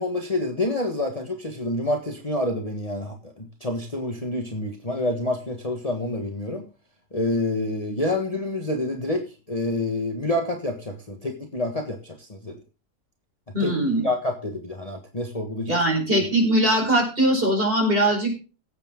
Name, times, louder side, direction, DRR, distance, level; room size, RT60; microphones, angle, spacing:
voice 1, 0.0-6.6 7.1-12.6 13.6-13.7 14.0-15.8, left 1 dB, 25° left, 3 dB, 1.5 m, -28 dB
voice 2, 13.5-14.1 15.7-18.4, right 1 dB, 35° right, 0 dB, 5.1 m, -21 dB
17.5 x 8.3 x 3.7 m, 0.33 s
omnidirectional pair, 1.6 m